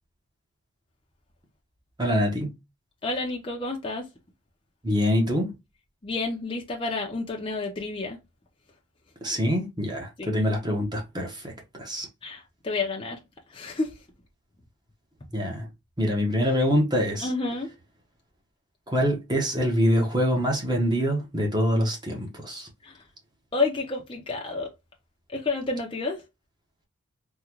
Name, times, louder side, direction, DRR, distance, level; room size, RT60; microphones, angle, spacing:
voice 1, 2.0-2.5 4.8-5.5 9.2-11.5 11.8-12.1 15.3-15.7 16.0-17.3 18.9-22.7, equal, 20° right, 0.8 m, -25 dB
voice 2, 3.0-4.1 6.0-8.2 10.2-10.3 12.2-13.2 13.5-13.9 17.2-17.7 22.8-22.9 23.5-24.7 25.3-26.2, left 3 dB, 25° left, 0.5 m, -30 dB
3.6 x 2.2 x 2.9 m
head